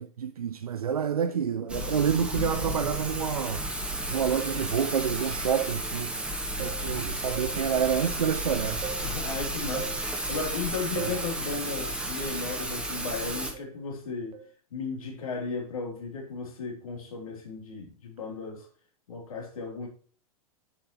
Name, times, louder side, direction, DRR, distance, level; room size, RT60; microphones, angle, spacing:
voice 1, 0.0-3.7 4.1-6.1 6.6-8.8 11.0-11.1, right 8 dB, 75° right, 0.6 m, -28 dB
Thunder / Rain, 1.7-13.5, right 1 dB, 5° right, 2.4 m, -33 dB
sound 1, 4.1-4.4 4.9-5.2 6.6-6.9 7.3-7.7 8.8-9.1 9.7-10.1 11.0-11.3 13.5-13.8 14.3-14.5, right 8 dB, 30° right, 1.5 m, -39 dB
voice 2, 9.0-14.4 14.7-18.7 19.1-19.9, left 4 dB, 65° left, 3.6 m, -35 dB
8.7 x 8.6 x 3.2 m
figure-of-eight pair, 100°, 19 cm